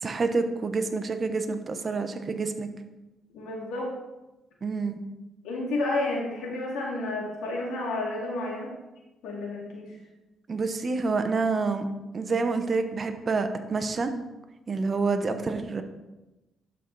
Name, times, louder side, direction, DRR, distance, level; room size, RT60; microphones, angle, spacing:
voice 1, 0.0-2.7 4.6-5.0 10.5-11.8 12.1-14.1 14.7-15.8, right 4 dB, 40° right, 7 dB, 0.8 m, -28 dB
voice 2, 3.3-3.9 5.4-8.7 9.2-10.0, left 2 dB, 85° left, -2 dB, 2.4 m, -31 dB
12.0 x 4.5 x 4.0 m, 1.0 s
cardioid pair, 90°, 0 cm